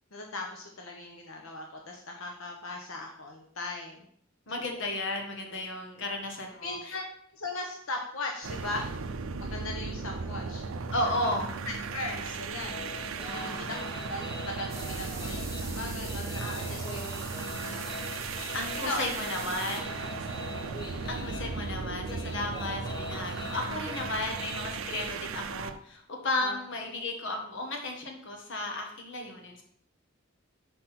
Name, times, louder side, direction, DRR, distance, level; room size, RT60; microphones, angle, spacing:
voice 1, 0.1-4.0 6.6-7.0 7.3-11.3 11.9-12.7 13.3-18.1 18.8-19.0 26.4-26.5, left 2 dB, 90° left, 1 dB, 1.1 m, -39 dB
voice 2, 4.5-7.0 10.9-11.5 13.2-13.7 16.5-16.7 18.5-20.1 21.0-29.6, left 2 dB, 65° left, 2 dB, 1.6 m, -34 dB
sound 1, 8.4-25.8, right 4 dB, 85° right, 0.5 m, -36 dB
sound 2, 12.6-25.1, left 2 dB, 20° left, 0.9 m, -43 dB
sound 3, 14.7-19.8, right 4 dB, 15° right, 1.1 m, -43 dB
6.0 x 5.3 x 5.9 m, 0.65 s
head